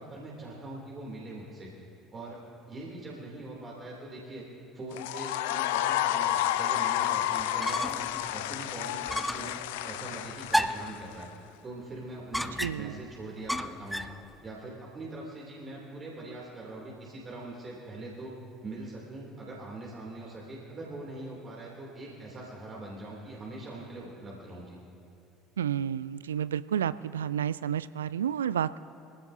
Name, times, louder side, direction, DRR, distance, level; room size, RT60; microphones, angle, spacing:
voice 1, 0.0-1.7 2.1-2.4 2.7-4.4 4.7-9.5 9.8-11.3 11.6-14.0 14.4-18.3 18.6-24.8, right 2 dB, 30° right, -4 dB, 2.9 m, -42 dB
sound 1, 4.9-11.2, left 12 dB, 65° left, 0.5 m, -30 dB
sound 2, 7.4-8.1 8.5-8.6 9.1-9.5 10.5-11.0 12.3-13.0 13.5-14.2, equal, ahead, 0.6 m, -31 dB
voice 2, 12.6-13.0 25.6-28.8, right 9 dB, 75° right, 17 dB, 0.3 m, -30 dB
24.0 x 16.0 x 2.7 m, 2.6 s
figure-of-eight pair, 65°, 0 cm